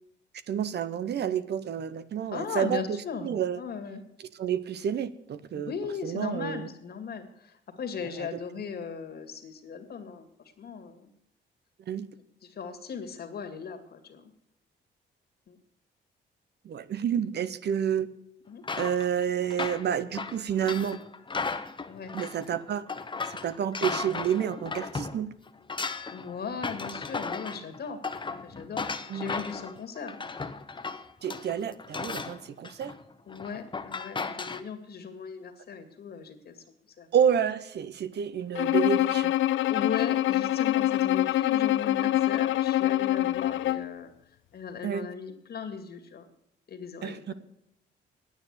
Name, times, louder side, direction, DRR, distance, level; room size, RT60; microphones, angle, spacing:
voice 1, 0.5-3.0 3.2-3.6 4.4-5.7 6.0-6.7 8.2-8.3 11.9-12.1 16.6-18.1 18.8-21.0 22.1-22.9 23.4-25.3 29.1-29.3 31.2-32.9 37.1-39.3 44.8-45.1 47.0-47.3, right 8 dB, 55° right, 14 dB, 0.8 m, -29 dB
voice 2, 2.3-4.0 5.5-11.1 12.4-14.3 15.5-15.6 18.5-18.6 21.9-22.1 26.1-28.0 28.4-30.2 33.3-36.6 37.0-37.1 39.7-44.1 44.5-46.3 46.7-47.3, left 6 dB, 55° left, 7 dB, 2.2 m, -38 dB
sound 1, 18.6-25.2 25.5-34.6, left 4 dB, 25° left, 1.0 m, -36 dB
Bowed string instrument, 38.6-44.0, left 14 dB, 75° left, 0.5 m, -25 dB
9.6 x 9.4 x 8.1 m, 0.78 s
cardioid pair, 90°, 20 cm